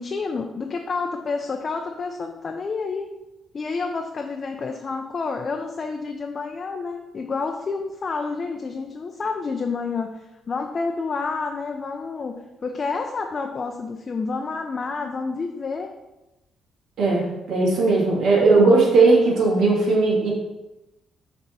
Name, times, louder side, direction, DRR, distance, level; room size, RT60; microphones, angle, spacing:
voice 1, 0.0-3.1 3.5-15.9, left 4 dB, 40° left, 3 dB, 0.5 m, -29 dB
voice 2, 17.0-20.3, right 3 dB, 75° right, -3 dB, 2.1 m, -18 dB
6.6 x 3.5 x 4.2 m, 0.99 s
cardioid pair, 90°, 0 cm